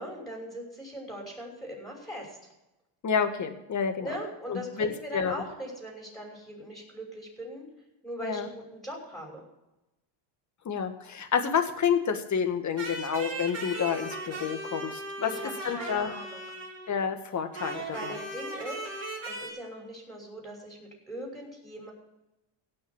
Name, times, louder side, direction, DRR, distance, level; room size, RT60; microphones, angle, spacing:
voice 1, 0.0-2.4 4.0-7.7 8.0-9.4 15.2-16.4 17.9-18.8 19.2-21.9, equal, ahead, 0 dB, 5.9 m, -40 dB
voice 2, 3.0-4.1 4.5-5.3 8.2-8.5 10.6-15.3 15.6-16.1 16.9-18.2, left 7 dB, 35° left, 8 dB, 1.8 m, -29 dB
sound 1, 12.8-17.0 17.5-19.5, right 2 dB, 30° right, 5.6 m, -38 dB
17.0 x 6.5 x 7.2 m, 0.95 s
cardioid pair, 115°, 48 cm